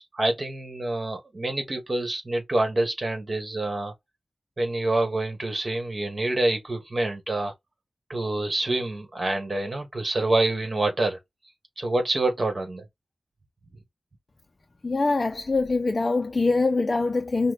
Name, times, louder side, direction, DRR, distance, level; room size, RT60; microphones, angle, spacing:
voice 1, 0.1-3.9 4.6-7.5 8.1-11.2 11.8-12.8, right 2 dB, 40° right, 1.5 m, -26 dB
voice 2, 14.8-17.5, left 3 dB, 40° left, 0.5 m, -24 dB
5.8 x 2.2 x 4.0 m
wide cardioid pair, 100°, 0 cm